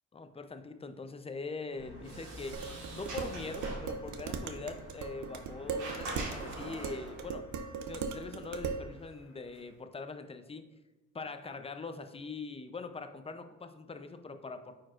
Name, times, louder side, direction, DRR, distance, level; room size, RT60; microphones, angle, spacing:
voice 1, 0.1-2.6 2.9-7.5 7.9-10.6 11.1-14.7, left 4 dB, 20° left, 8 dB, 0.5 m, -42 dB
Sliding door, 1.7-7.3, right 2 dB, 90° right, 1.8 m, -44 dB
sound 1, 1.8-9.7, left 2 dB, 90° left, 1.1 m, -56 dB
Dishes pots and pans, 2.5-8.9, right 5 dB, 70° right, 0.6 m, -39 dB
8.9 x 4.5 x 2.5 m, 1.1 s
cardioid pair, 90°, 30 cm